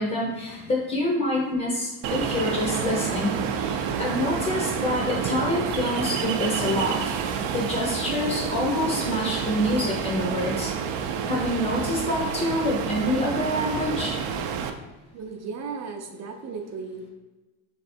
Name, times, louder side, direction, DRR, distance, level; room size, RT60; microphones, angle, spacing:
voice 1, 0.0-7.0 7.5-10.7 11.3-14.2, left 1 dB, 15° left, -3 dB, 0.5 m, -26 dB
Ocean, 2.0-14.7, right 7 dB, 80° right, 0.6 m, -29 dB
voice 2, 15.1-17.1, right 5 dB, 40° right, 4 dB, 0.5 m, -35 dB
3.6 x 3.4 x 4.2 m, 1.2 s
cardioid pair, 165°, 43 cm